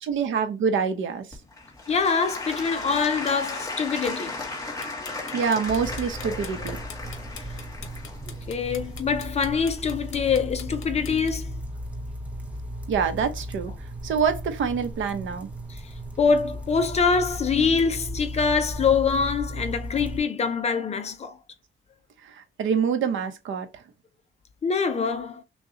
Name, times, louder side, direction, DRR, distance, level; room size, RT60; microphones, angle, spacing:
voice 1, 0.0-1.3 5.3-6.8 12.9-13.7 14.0-15.5 22.2-23.7, right 6 dB, 70° right, 0.8 m, -26 dB
Applause / Crowd, 1.3-10.2 10.8-10.9, left 3 dB, 15° left, 1.4 m, -36 dB
voice 2, 1.9-4.3 8.5-11.5 15.7-21.4 24.6-25.4, left 5 dB, 30° left, 0.6 m, -24 dB
sound 1, 4.8-11.3, left 8 dB, 75° left, 0.9 m, -43 dB
sound 2, 5.7-20.2, equal, 5° right, 0.7 m, -36 dB
6.3 x 2.3 x 2.8 m
cardioid pair, 175°, 21 cm